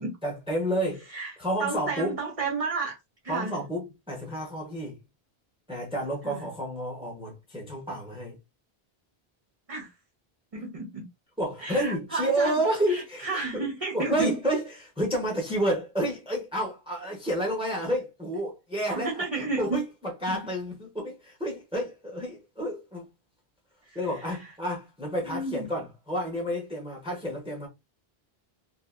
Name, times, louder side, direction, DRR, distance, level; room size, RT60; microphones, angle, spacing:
voice 1, 0.2-1.0 1.4-2.2 3.3-5.0 5.7-8.4 11.4-13.6 13.9-19.2 19.6-23.1 23.9-27.7, right 1 dB, 5° right, 0.8 m, -30 dB
voice 2, 1.6-3.0 3.2-3.6 6.2-6.5 9.7-9.9 10.5-11.1 11.6-12.6 12.9-14.4 18.9-19.8 20.3-20.4 23.8-24.5 25.2-25.7, right 3 dB, 40° right, 0.7 m, -32 dB
2.7 x 2.5 x 2.4 m
omnidirectional pair, 1.0 m